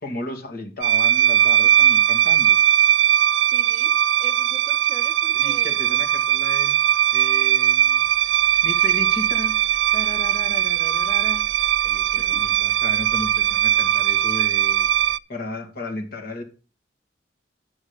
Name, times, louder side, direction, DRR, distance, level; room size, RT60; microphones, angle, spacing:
voice 1, 0.0-2.6 5.3-6.8 7.1-8.0 8.6-9.6 9.9-11.4 11.8-14.9 15.3-16.4, left 2 dB, 55° left, 4 dB, 2.1 m, -34 dB
sound 1, 0.8-15.2, right 11 dB, 85° right, 0.4 m, -19 dB
voice 2, 3.4-5.8 12.2-12.4, equal, 10° right, 6 dB, 0.8 m, -43 dB
9.8 x 6.4 x 5.2 m, 0.34 s
head